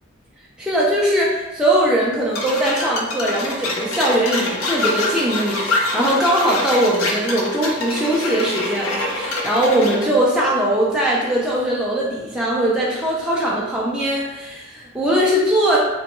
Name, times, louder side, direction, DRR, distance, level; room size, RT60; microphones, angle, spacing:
voice 1, 0.6-15.8, right 1 dB, 5° right, -6 dB, 0.4 m, -20 dB
sound 1, 2.3-10.1, left 2 dB, 80° left, 0.5 m, -25 dB
3.4 x 2.2 x 2.9 m, 1.0 s
head